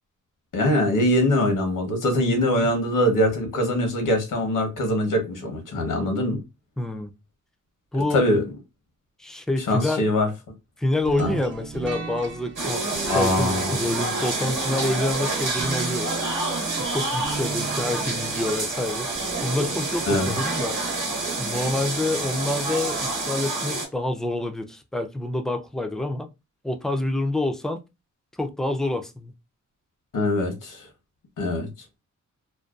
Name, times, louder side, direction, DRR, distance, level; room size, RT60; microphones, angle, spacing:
voice 1, 0.5-6.4 8.1-8.4 9.7-10.3 11.2-11.3 13.1-13.8 20.1-20.3 30.1-30.9 31.4-31.7, left 1 dB, 85° left, 0.9 m, -23 dB
voice 2, 6.8-7.1 7.9-8.2 9.2-10.1 10.8-16.1 16.8-19.1 19.4-20.8 21.4-26.3 26.6-27.8 28.4-29.3, left 2 dB, ahead, 0.3 m, -27 dB
sound 1, 11.0-22.1, right 4 dB, 40° right, 0.6 m, -37 dB
sound 2, 12.6-23.9, right 3 dB, 75° right, 0.9 m, -28 dB
2.5 x 2.2 x 2.3 m
wide cardioid pair, 100°, 31 cm